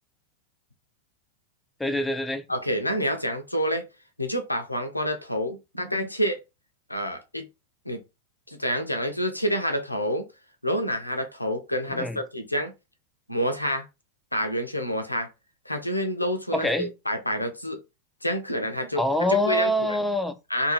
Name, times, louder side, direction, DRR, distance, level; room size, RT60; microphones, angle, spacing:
voice 1, 1.8-2.4 12.0-12.2 16.5-16.9 19.0-20.3, left 1 dB, 5° left, 0.3 m, -25 dB
voice 2, 2.5-3.9 4.2-6.4 6.9-7.4 7.9-8.0 8.5-10.3 10.6-12.7 13.3-13.9 14.3-15.3 15.7-17.8 18.2-19.0 19.3-20.0 20.5-20.7, equal, 85° left, 0.5 m, -28 dB
2.5 x 2.3 x 3.0 m
figure-of-eight pair, 90°, 0 cm